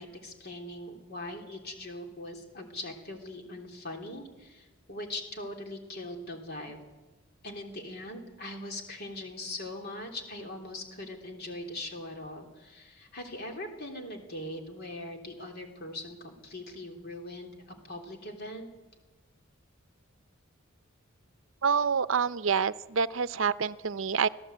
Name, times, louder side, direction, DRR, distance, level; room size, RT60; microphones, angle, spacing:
voice 1, 0.0-6.8 7.4-18.7, left 1 dB, 50° left, 2 dB, 3.3 m, -41 dB
voice 2, 21.6-24.3, right 6 dB, 70° right, 14 dB, 0.6 m, -27 dB
25.5 x 16.5 x 8.0 m, 1.2 s
head